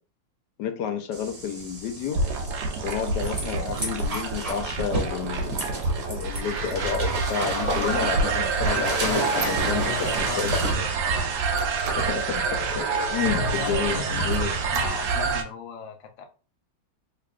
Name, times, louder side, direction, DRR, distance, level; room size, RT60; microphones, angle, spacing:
voice 1, 0.6-2.2 2.8-5.8 6.1-9.9 10.2-10.8 12.0-14.5, left 7 dB, 70° left, 1.1 m, -30 dB
sound 1, 1.1-10.7, right 1 dB, 40° right, 0.5 m, -33 dB
sound 2, 2.1-15.4, right 4 dB, 65° right, 1.1 m, -27 dB
Squeak, 7.2-10.2 10.6-12.2 12.7-12.8 13.2-13.9 14.3-15.3, right 5 dB, 85° right, 1.5 m, -39 dB
voice 2, 7.6-8.1 8.7-11.3 13.1-16.3, left 6 dB, 85° left, 0.6 m, -36 dB
3.5 x 3.4 x 2.4 m
omnidirectional pair, 2.2 m